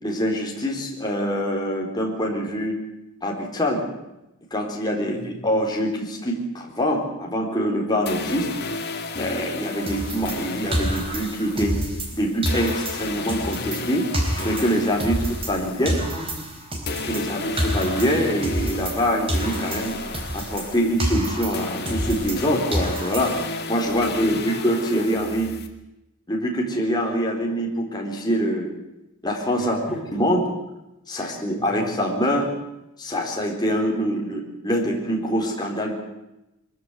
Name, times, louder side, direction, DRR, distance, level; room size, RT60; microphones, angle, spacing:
voice 1, 0.0-2.8 3.2-3.8 4.5-8.5 9.2-11.8 12.1-14.1 14.4-15.1 15.5-16.0 16.9-19.9 20.3-25.5 26.3-28.7 29.2-29.8 30.1-30.5 31.1-32.5 33.0-35.9, equal, 20° left, -1 dB, 4.0 m, -24 dB
voice 2, 5.0-5.5 15.0-16.6 24.2-24.7 29.6-30.3 31.2-31.9, equal, 5° right, -2 dB, 6.1 m, -41 dB
sound 1, 8.1-16.6 16.9-25.7, left 3 dB, 45° left, 2.4 m, -34 dB
sound 2, 9.9-12.2 12.4-15.6 15.8-19.0 19.3-22.4 22.7-23.6, right 1 dB, 25° right, 4.4 m, -28 dB
22.5 x 14.5 x 9.7 m, 0.94 s
head